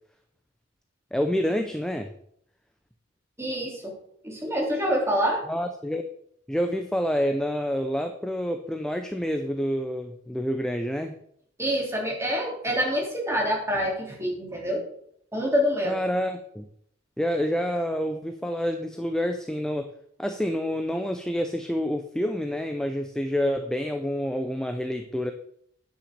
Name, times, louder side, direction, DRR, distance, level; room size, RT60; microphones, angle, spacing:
voice 1, 1.1-2.1 5.5-6.0 6.5-11.1 15.8-16.7 17.2-19.9 20.2-25.3, equal, 5° left, 6 dB, 0.6 m, -28 dB
voice 2, 3.4-3.9 4.2-5.4 11.6-14.8 15.3-16.0, equal, 15° right, -2 dB, 3.3 m, -26 dB
9.8 x 6.3 x 6.7 m, 0.68 s
head